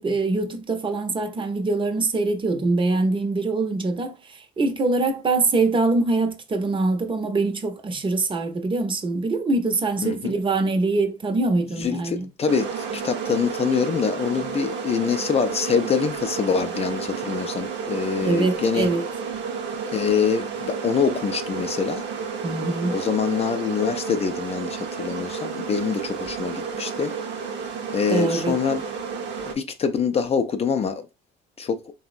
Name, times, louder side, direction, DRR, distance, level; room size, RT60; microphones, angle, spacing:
voice 1, 0.0-4.1 4.6-12.3 18.2-19.0 22.4-23.0 28.1-28.5, right 3 dB, 25° right, 0.6 m, -23 dB
voice 2, 10.0-10.3 11.8-18.9 19.9-22.0 22.9-27.1 27.9-28.8 29.6-31.1 31.6-31.8, left 6 dB, 30° left, 0.4 m, -25 dB
sound 1, 12.5-29.5, right 5 dB, 65° right, 0.6 m, -31 dB
3.4 x 2.0 x 2.4 m
supercardioid pair, 80°, 20 cm